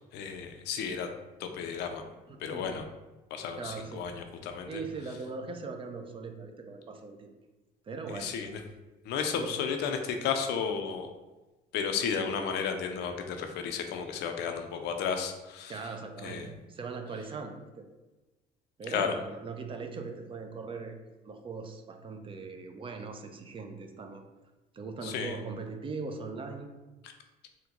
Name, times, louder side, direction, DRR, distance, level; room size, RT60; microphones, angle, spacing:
voice 1, 0.1-1.1 1.4-2.0 2.4-2.9 3.3-4.8 8.1-8.6 9.0-11.1 11.7-16.5 18.9-19.1 25.0-25.4 27.0-27.1, left 6 dB, 80° left, 6 dB, 0.4 m, -33 dB
voice 2, 2.3-2.7 3.6-4.1 4.7-7.3 7.8-8.3 9.3-9.5 15.7-16.4 16.7-17.9 18.8-21.0 21.2-24.2 24.7-26.7, right 4 dB, 30° right, 5 dB, 0.4 m, -40 dB
3.7 x 2.1 x 2.9 m, 1.1 s
cardioid pair, 110°, 17 cm